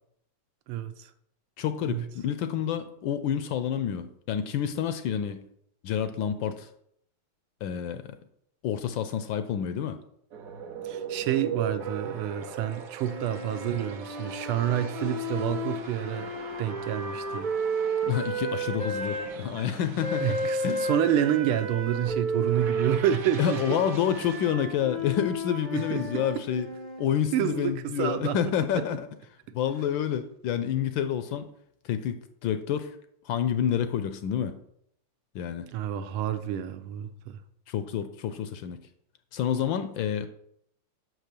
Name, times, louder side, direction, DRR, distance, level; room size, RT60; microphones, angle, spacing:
voice 1, 0.7-1.1 1.9-2.1 10.8-16.3 16.6-17.5 20.2-23.8 25.7-26.3 27.3-28.8 35.7-37.4, right 10 dB, 80° right, 1.5 m, -29 dB
voice 2, 1.6-5.4 5.8-6.7 7.6-8.2 8.6-10.0 18.1-20.4 20.6-20.9 23.4-26.7 27.0-29.1 29.5-31.5 31.8-33.0 33.2-34.6 35.3-35.7 37.7-38.8 39.3-40.3, left 9 dB, 75° left, 1.2 m, -28 dB
sound 1, 10.3-24.5, right 7 dB, 55° right, 1.0 m, -40 dB
sound 2, 13.0-19.3 20.0-27.1, right 2 dB, 25° right, 0.9 m, -33 dB
6.1 x 4.8 x 6.6 m
omnidirectional pair, 2.4 m